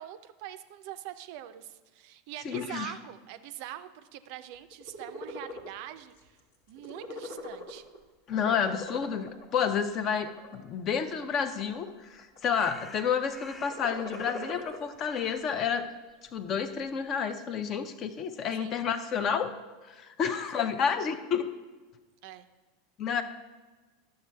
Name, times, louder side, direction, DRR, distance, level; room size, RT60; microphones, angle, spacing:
voice 1, 0.0-6.4 6.7-7.9 18.6-18.8 20.5-20.7 22.2-22.5, right 12 dB, 55° right, 11 dB, 0.4 m, -43 dB
voice 2, 2.4-2.9 8.3-15.9 16.3-19.5 19.9-21.5 23.0-23.2, left 7 dB, 40° left, 10 dB, 0.5 m, -30 dB
sound 1, 4.7-5.7 6.2-6.4 6.7-8.0 8.3-9.4 10.1-10.5 11.1-11.9 12.2-12.7 13.6-14.8, left 2 dB, 65° left, 1.0 m, -41 dB
sound 2, 11.4-11.5 12.5-14.7 15.0-17.1, left 1 dB, 10° left, 1.2 m, -51 dB
11.5 x 6.5 x 2.3 m, 1.3 s
figure-of-eight pair, 85°, 0 cm